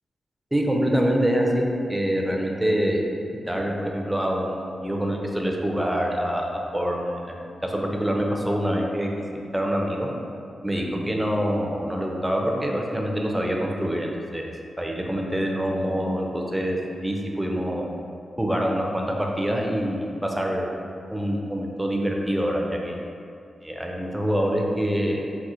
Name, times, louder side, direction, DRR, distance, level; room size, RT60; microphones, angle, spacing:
voice 1, 0.5-3.0 3.5-10.1 10.6-14.5 14.8-17.9 18.4-20.7 21.1-23.0 23.6-25.3, equal, 10° right, 0 dB, 0.4 m, -25 dB
4.2 x 2.1 x 2.5 m, 2.5 s
cardioid pair, 55°, 0 cm